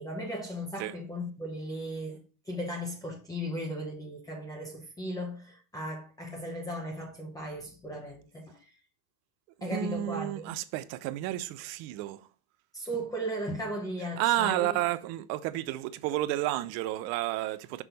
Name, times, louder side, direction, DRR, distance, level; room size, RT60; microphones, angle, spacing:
voice 1, 0.0-8.6 9.6-10.4 12.7-14.8, equal, 10° left, 1.1 m, -36 dB
voice 2, 9.6-12.3 14.2-17.8, right 15 dB, 40° right, 0.5 m, -31 dB
6.0 x 3.3 x 5.4 m
supercardioid pair, 130°, 43 cm